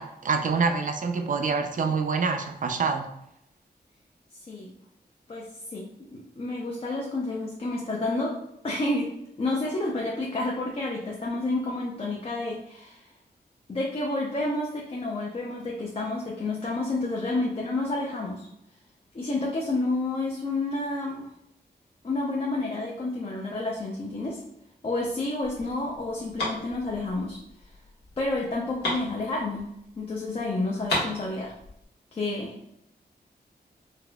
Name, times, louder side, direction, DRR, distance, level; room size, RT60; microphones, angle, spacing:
voice 1, 0.0-3.1, right 5 dB, 50° right, 5 dB, 0.4 m, -26 dB
voice 2, 5.3-8.4 8.6-9.1 9.4-13.0 13.7-18.5 19.1-21.2 22.0-24.4 24.8-27.4 28.2-31.5 32.1-32.5, left 2 dB, 35° left, -3 dB, 0.5 m, -30 dB
sound 1, 25.4-30.0 30.2-30.3 30.6-31.8, left 1 dB, 85° left, 1.2 m, -34 dB
3.9 x 2.1 x 2.2 m, 0.80 s
wide cardioid pair, 115°, 17 cm